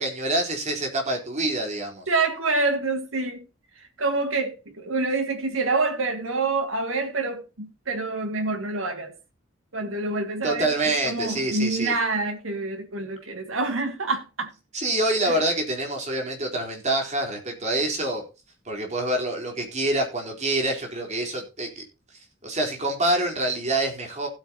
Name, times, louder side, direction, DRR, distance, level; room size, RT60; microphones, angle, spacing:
voice 1, 0.0-2.1 10.4-11.9 14.7-18.2 18.7-21.8 22.4-24.3, right 1 dB, 35° right, 4.1 m, -26 dB
voice 2, 2.1-3.4 4.0-9.1 9.7-10.7 11.0-14.5 15.3-15.4, right 3 dB, 80° right, 2.4 m, -27 dB
15.5 x 8.9 x 2.9 m
head